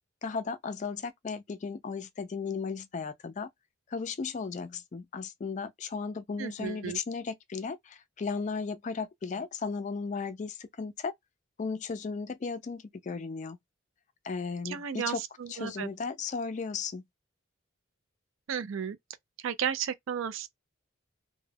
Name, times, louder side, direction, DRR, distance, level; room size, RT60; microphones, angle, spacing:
voice 1, 0.2-3.5 3.9-11.1 11.6-13.6 14.2-15.2 15.5-17.0, left 5 dB, 35° left, 0.3 m, -35 dB
voice 2, 6.4-7.0 14.6-15.9 18.5-19.0 19.4-20.5, right 8 dB, 75° right, 0.4 m, -34 dB
2.2 x 2.1 x 3.2 m
head